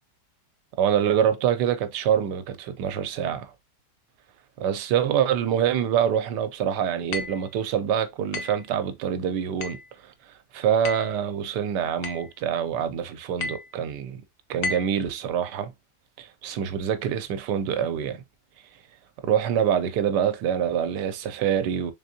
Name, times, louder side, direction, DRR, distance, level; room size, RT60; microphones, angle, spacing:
voice 1, 0.8-3.5 4.6-10.1 10.5-14.2 14.5-15.7 16.2-18.2 19.2-21.9, right 9 dB, 85° right, 1.2 m, -25 dB
sound 1, 7.1-7.5 8.3-8.7 9.6-9.9 10.9-11.2 12.0-12.3 13.4-13.7 14.6-15.0, left 4 dB, 60° left, 1.0 m, -33 dB
3.9 x 3.5 x 2.7 m
omnidirectional pair, 1.8 m